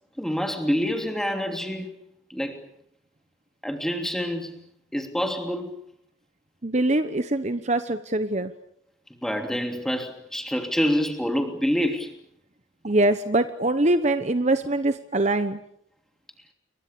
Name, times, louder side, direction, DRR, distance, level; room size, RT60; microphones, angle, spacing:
voice 1, 0.2-1.9 2.3-2.7 3.6-4.6 4.9-5.7 9.2-12.1, equal, ahead, 5 dB, 3.1 m, -27 dB
voice 2, 6.6-8.5 12.8-15.6, right 2 dB, 35° right, 10 dB, 1.0 m, -23 dB
29.5 x 23.0 x 7.0 m, 0.69 s
head